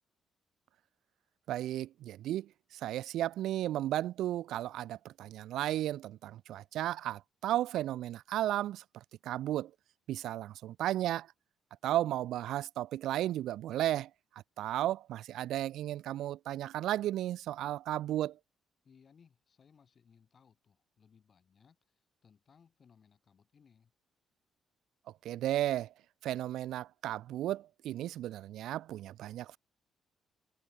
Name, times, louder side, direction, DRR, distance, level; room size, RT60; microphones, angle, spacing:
voice 1, 1.5-9.7 10.1-11.3 11.8-14.1 14.6-18.4 25.2-25.9 26.2-29.6, right 13 dB, 80° right, 0.4 m, -34 dB
voice 2, 18.8-23.9, left 6 dB, 45° left, 7.3 m, -64 dB
cardioid pair, 90°, 0 cm